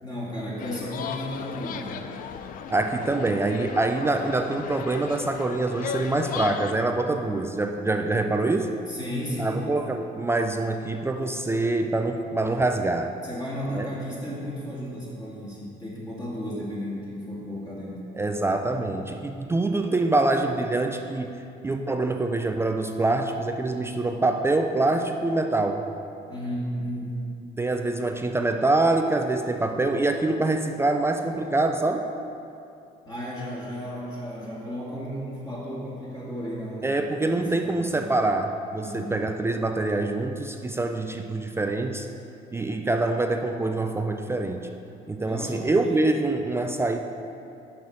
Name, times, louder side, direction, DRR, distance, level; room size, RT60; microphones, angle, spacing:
voice 1, 0.0-2.1 8.9-9.7 13.2-18.0 26.3-27.2 33.0-36.9 37.2-38.0 38.8-39.2 45.2-46.1, equal, 25° left, -7 dB, 1.8 m, -34 dB
sound 1, 0.6-6.7, left 7 dB, 55° left, 0.4 m, -36 dB
voice 2, 2.7-8.7 9.4-13.1 13.7-13.9 18.2-25.8 27.6-32.1 36.8-42.1 42.5-44.7 45.1-47.0, right 2 dB, 15° right, 5 dB, 0.3 m, -25 dB
6.0 x 5.7 x 4.9 m, 2.6 s
cardioid pair, 110°, 17 cm